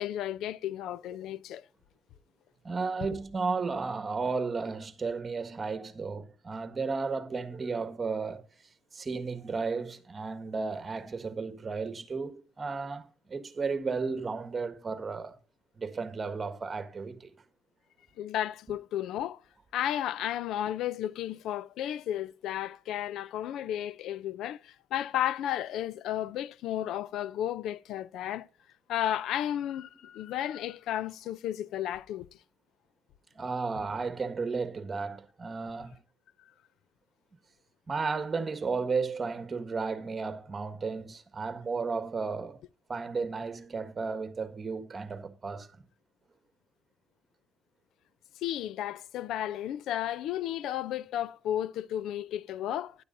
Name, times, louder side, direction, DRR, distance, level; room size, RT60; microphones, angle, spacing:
voice 1, 0.0-1.6 18.2-19.4 19.7-28.5 28.9-32.3 48.4-53.0, left 11 dB, 85° left, 0.4 m, -33 dB
voice 2, 2.6-8.4 8.9-15.3 15.8-17.3 33.3-36.0 37.9-42.6 42.9-45.7, right 4 dB, 35° right, 1.6 m, -33 dB
15.5 x 11.0 x 2.6 m
cardioid pair, 90°, 0 cm